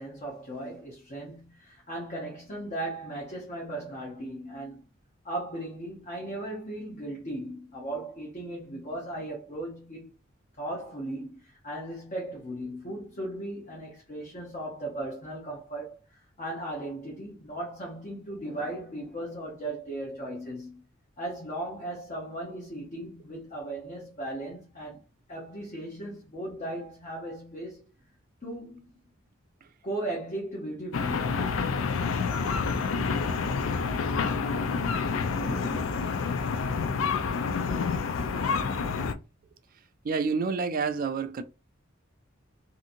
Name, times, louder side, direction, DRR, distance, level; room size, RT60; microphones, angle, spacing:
voice 1, 0.0-4.8 5.2-10.1 10.6-20.8 21.2-25.0 25.3-27.9 28.4-28.8 29.8-31.5 35.2-36.5, right 1 dB, 35° left, 0.7 m, -37 dB
sound 1, 30.9-39.1, left 5 dB, 65° left, 0.4 m, -28 dB
voice 2, 40.0-41.4, right 5 dB, 45° right, 0.3 m, -28 dB
2.7 x 2.6 x 2.5 m
head